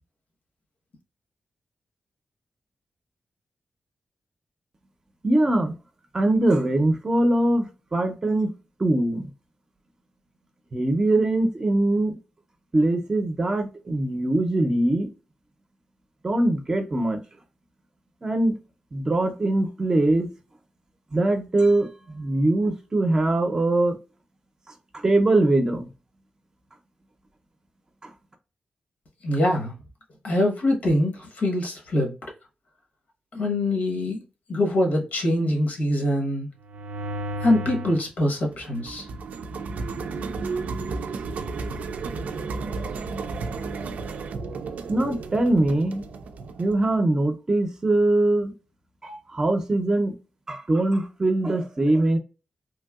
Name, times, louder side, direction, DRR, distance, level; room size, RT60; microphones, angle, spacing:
voice 1, 5.2-5.7 6.1-8.5 8.8-9.3 10.7-12.2 12.7-15.1 16.2-17.2 18.2-18.5 18.9-20.3 21.1-24.0 24.9-25.9 28.0-28.1 44.9-46.0 46.6-48.5 49.0-50.1 50.5-52.2, right 2 dB, 25° right, 0.6 m, -22 dB
voice 2, 29.2-29.7 30.2-32.1 33.3-34.2 34.5-36.5 37.4-39.1, left 1 dB, 90° left, 1.1 m, -23 dB
sound 1, 36.6-38.0 38.4-47.0, right 3 dB, 80° right, 0.4 m, -33 dB
3.1 x 2.7 x 2.3 m
wide cardioid pair, 160°, 2 cm